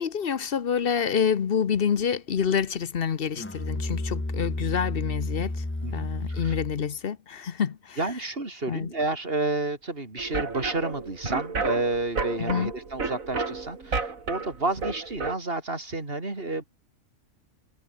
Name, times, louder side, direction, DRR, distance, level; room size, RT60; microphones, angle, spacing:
voice 1, 0.0-5.6 5.9-8.0 8.7-8.9 12.4-12.7, left 7 dB, 45° left, 1.0 m, -27 dB
Musical instrument, 3.4-6.9, left 2 dB, 10° left, 0.7 m, -31 dB
voice 2, 5.8-6.5 8.0-16.6, right 2 dB, 40° right, 4.0 m, -30 dB
sound 1, 10.2-15.4, right 4 dB, 70° right, 3.1 m, -32 dB
omnidirectional pair, 1.5 m